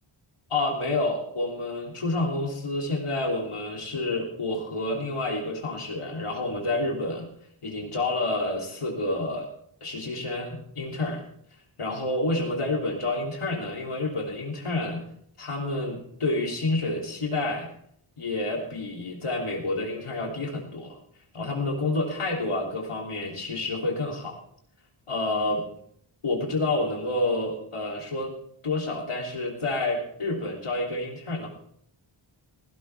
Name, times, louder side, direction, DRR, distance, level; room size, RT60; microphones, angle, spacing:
voice 1, 0.5-7.3 7.6-9.5 9.8-11.2 11.8-15.0 15.4-17.7 18.2-21.0 21.3-24.4 25.1-25.6 26.2-28.3 28.6-31.5, left 2 dB, 85° left, 0 dB, 3.2 m, -29 dB
16.5 x 16.5 x 3.4 m, 0.68 s
wide cardioid pair, 85°, 50 cm